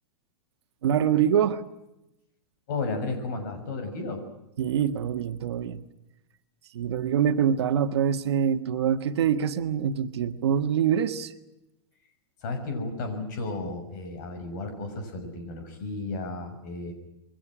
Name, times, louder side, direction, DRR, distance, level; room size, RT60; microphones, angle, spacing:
voice 1, 0.8-1.6 4.6-5.8 6.7-11.3, right 8 dB, 70° right, 9 dB, 1.7 m, -25 dB
voice 2, 2.7-4.2 12.4-16.9, left 3 dB, 45° left, 6 dB, 6.6 m, -33 dB
27.5 x 23.0 x 6.3 m, 0.89 s
supercardioid pair, 175°, 14 cm